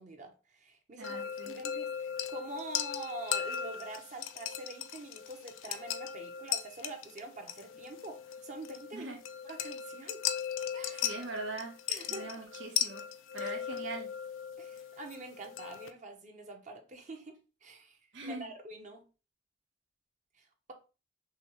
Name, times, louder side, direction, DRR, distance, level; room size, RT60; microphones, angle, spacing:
voice 1, 0.0-9.1 9.4-10.2 10.7-11.2 11.9-12.4 13.4-13.5 14.6-19.0 20.3-20.7, right 2 dB, 40° right, 3 dB, 0.9 m, -45 dB
sound 1, 1.0-15.9, left 9 dB, 85° left, 0.4 m, -38 dB
voice 2, 1.0-1.6 8.9-9.2 11.0-11.8 12.1-13.1 13.3-14.1 18.1-18.5, right 2 dB, 75° right, 1 dB, 1.3 m, -41 dB
6.0 x 2.3 x 3.1 m, 0.32 s
head